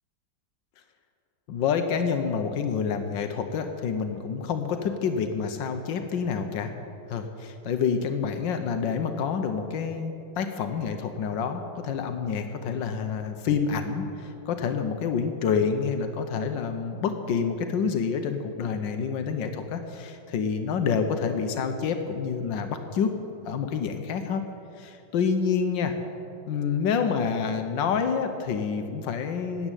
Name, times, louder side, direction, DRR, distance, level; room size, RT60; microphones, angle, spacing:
voice 1, 1.5-6.7 7.1-23.1 23.4-24.4 24.8-25.9 26.5-29.7, left 6 dB, 90° left, 6 dB, 1.6 m, -28 dB
13.5 x 8.6 x 9.0 m, 2.7 s
omnidirectional pair, 1.9 m